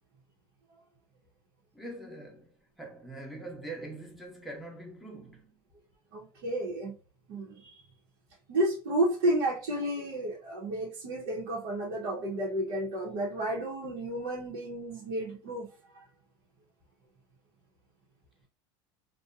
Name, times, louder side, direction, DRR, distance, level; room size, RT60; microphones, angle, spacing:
voice 1, 1.7-5.6, right 2 dB, ahead, 0.7 m, -43 dB
voice 2, 6.1-6.9 7.3-7.8 8.5-15.7 15.9-16.0, right 1 dB, 80° right, 0.9 m, -31 dB
2.6 x 2.2 x 2.4 m
supercardioid pair, 135°, 12 cm